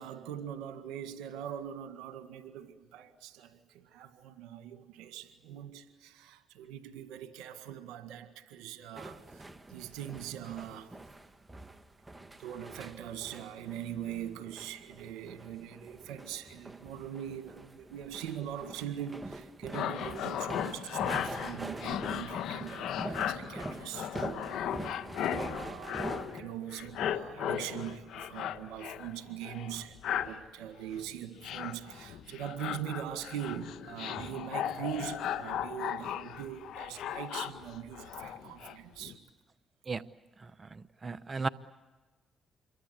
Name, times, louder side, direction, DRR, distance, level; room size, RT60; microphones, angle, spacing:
voice 1, 0.0-11.0 12.4-39.2, right 10 dB, 90° right, 1.8 m, -42 dB
sound 1, 8.9-26.4, right 2 dB, 20° right, 2.2 m, -44 dB
sound 2, 19.7-26.5 26.7-29.1 29.4-30.4 30.9-31.1 31.4-38.8 39.0-39.2, left 9 dB, 80° left, 1.2 m, -36 dB
voice 2, 40.6-41.5, right 4 dB, 40° right, 0.9 m, -35 dB
27.5 x 23.0 x 8.2 m
supercardioid pair, 60°, 0 cm